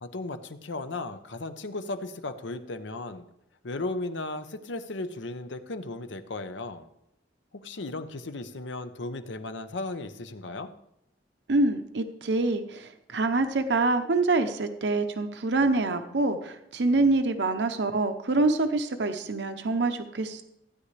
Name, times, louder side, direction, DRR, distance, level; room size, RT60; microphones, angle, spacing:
voice 1, 0.0-3.2 3.6-6.9 7.5-10.7, left 2 dB, 85° left, 10 dB, 0.8 m, -35 dB
voice 2, 11.5-20.4, right 2 dB, 70° right, 8 dB, 0.7 m, -26 dB
15.5 x 9.7 x 3.3 m, 0.82 s
head